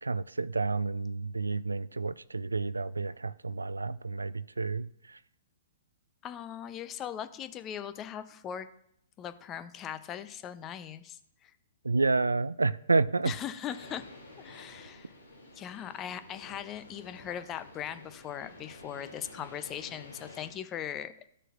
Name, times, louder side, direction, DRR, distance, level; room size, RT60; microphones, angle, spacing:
voice 1, 0.0-4.9 11.8-13.3, right 3 dB, 85° right, 18 dB, 0.3 m, -29 dB
voice 2, 6.2-8.7 9.2-11.5 13.2-14.0 14.4-15.1 15.5-21.1, left 9 dB, 25° left, 12 dB, 0.6 m, -39 dB
sound 1, 13.7-20.5, left 2 dB, 80° left, 2.7 m, -51 dB
13.5 x 6.6 x 2.5 m, 0.72 s
figure-of-eight pair, 115°, 0 cm